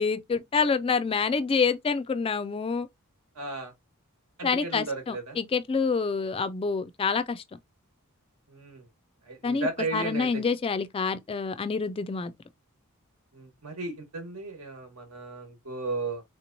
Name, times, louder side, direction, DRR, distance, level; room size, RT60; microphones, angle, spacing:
voice 1, 0.0-2.9 4.4-7.4 9.4-12.3, left 5 dB, 25° left, 0.3 m, -27 dB
voice 2, 3.3-3.7 4.4-5.4 8.5-8.9 9.3-10.4 13.3-16.2, right 3 dB, 80° right, 1.3 m, -35 dB
3.5 x 3.0 x 2.6 m
head